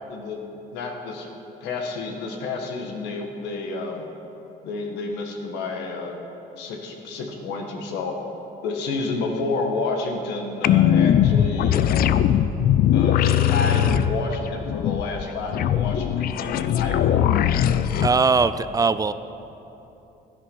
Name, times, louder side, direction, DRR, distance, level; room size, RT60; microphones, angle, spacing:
voice 1, 0.1-0.4 0.7-1.3 1.6-4.1 4.6-6.2 6.6-8.2 8.6-12.0 12.9-17.2, left 3 dB, 90° left, 2 dB, 1.7 m, -30 dB
sound 1, 10.6-18.1, left 10 dB, 60° left, 0.5 m, -20 dB
voice 2, 18.0-19.1, right 4 dB, 20° right, 13 dB, 0.4 m, -20 dB
15.5 x 10.5 x 5.5 m, 2.9 s
cardioid pair, 110°, 17 cm